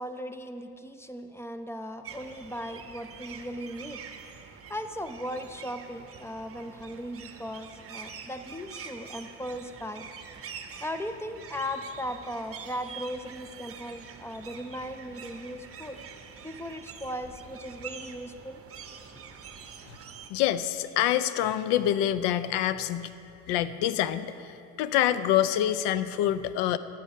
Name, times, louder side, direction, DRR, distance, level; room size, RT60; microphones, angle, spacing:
voice 1, 0.0-4.0 4.7-10.1 10.4-10.5 10.8-16.0 16.4-18.6, equal, 5° left, 9 dB, 0.6 m, -37 dB
sound 1, 2.0-20.3, right 6 dB, 30° right, 1.1 m, -45 dB
voice 2, 20.3-23.1 23.5-26.8, left 11 dB, 60° left, 14 dB, 0.7 m, -26 dB
11.5 x 9.2 x 5.4 m, 2.7 s
hypercardioid pair, 80°, 45 cm